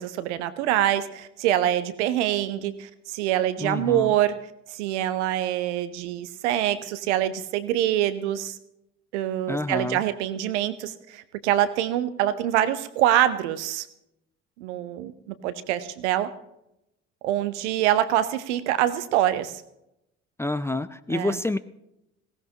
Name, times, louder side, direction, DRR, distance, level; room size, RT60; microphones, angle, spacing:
voice 1, 0.0-4.3 4.7-8.6 9.1-13.9 14.6-16.3 17.2-19.6 21.1-21.4, right 12 dB, 70° right, 13 dB, 0.9 m, -25 dB
voice 2, 3.6-4.1 9.5-10.0 20.4-21.6, left 2 dB, 5° left, 12 dB, 0.5 m, -28 dB
19.0 x 16.5 x 2.9 m, 0.84 s
figure-of-eight pair, 50°, 36 cm